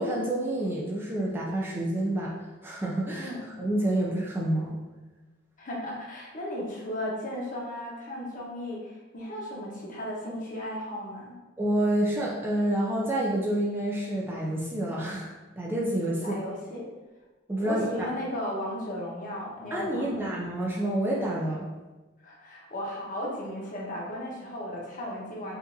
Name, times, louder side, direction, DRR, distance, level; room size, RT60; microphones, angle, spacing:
voice 1, 0.0-2.3 2.6-3.3 3.6-4.8 11.6-16.4 17.5-18.1 19.7-21.7, right 1 dB, 10° right, -4 dB, 0.5 m, -28 dB
voice 2, 5.6-11.3 16.2-16.9 17.6-20.4 22.2-25.6, left 1 dB, 40° left, -4 dB, 0.9 m, -35 dB
5.0 x 2.6 x 2.7 m, 1.2 s
head